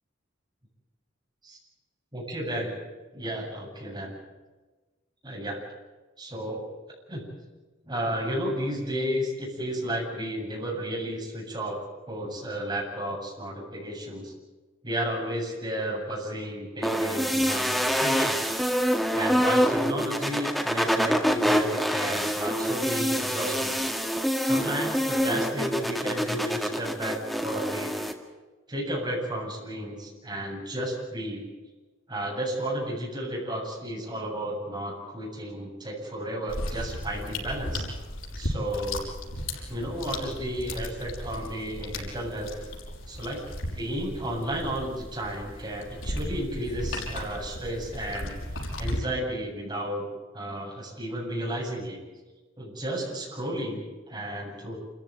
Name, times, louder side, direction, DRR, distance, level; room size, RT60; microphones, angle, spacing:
voice 1, 2.1-2.8 3.1-4.1 5.2-5.6 6.2-6.6 7.1-7.3 7.8-11.8 12.1-14.3 14.8-18.5 19.1-23.8 24.4-27.9 28.7-31.4 32.1-37.8 38.4-39.0 39.7-42.5 43.1-48.4 48.8-50.1 50.3-52.0 52.6-54.8, right 1 dB, 20° right, -2 dB, 8.0 m, -33 dB
sound 1, 16.8-28.1, equal, ahead, 2.1 m, -26 dB
sound 2, 36.5-49.0, left 1 dB, 75° left, 6.0 m, -36 dB
28.0 x 15.0 x 9.0 m, 1.2 s
head